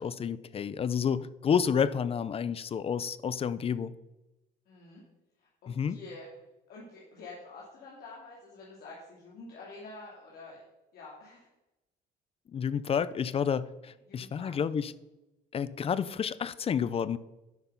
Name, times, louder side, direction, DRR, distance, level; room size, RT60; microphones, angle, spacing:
voice 1, 0.0-3.9 5.7-6.0 12.5-14.9 15.5-17.2, left 7 dB, 35° left, 17 dB, 0.5 m, -30 dB
voice 2, 4.7-5.0 5.4-6.3 6.7-10.6 10.9-11.5 14.1-14.5, left 3 dB, 65° left, -4 dB, 2.5 m, -48 dB
10.5 x 6.0 x 5.5 m, 0.97 s
cardioid pair, 110°, 17 cm